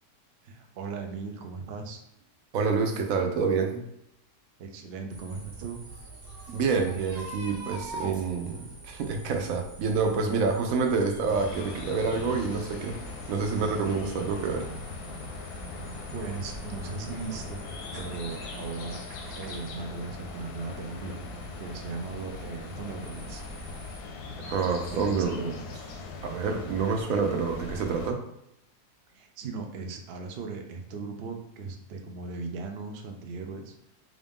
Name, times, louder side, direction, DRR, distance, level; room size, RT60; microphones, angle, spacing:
voice 1, 0.4-2.0 4.6-5.9 8.0-8.2 15.8-15.9 16.1-17.7 18.0-19.0 19.4-21.3 21.6-23.4 24.9-25.7 29.1-33.9, right 4 dB, 85° right, 3 dB, 0.5 m, -38 dB
voice 2, 2.5-3.8 6.5-13.0 13.3-14.7 24.4-25.4 26.2-28.2, right 5 dB, 70° right, 4 dB, 1.0 m, -27 dB
sound 1, 5.1-12.0 12.4-13.3 13.5-13.7, right 2 dB, 25° right, 0.5 m, -45 dB
sound 2, 5.1-24.0, right 2 dB, 45° right, 1.1 m, -47 dB
sound 3, 11.3-28.1, left 3 dB, 85° left, 1.1 m, -40 dB
3.7 x 2.6 x 3.5 m, 0.80 s
omnidirectional pair, 1.7 m